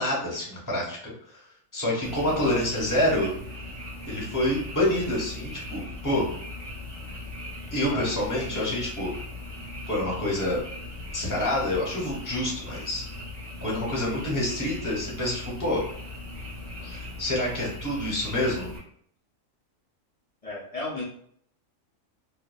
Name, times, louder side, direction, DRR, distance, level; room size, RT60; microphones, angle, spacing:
voice 1, 0.0-1.4 1.7-3.3 4.0-6.3 7.7-9.1 9.9-10.6 11.1-13.1 13.6-15.8 16.8-18.7, left 1 dB, 20° left, -5 dB, 0.7 m, -27 dB
Frog, 2.0-18.8, left 2 dB, 35° right, 1.4 m, -39 dB
voice 2, 2.3-2.6 3.1-3.3 7.9-8.7 20.4-21.0, left 2 dB, 65° left, -7 dB, 0.3 m, -36 dB
2.9 x 2.0 x 2.2 m, 0.63 s
omnidirectional pair, 1.4 m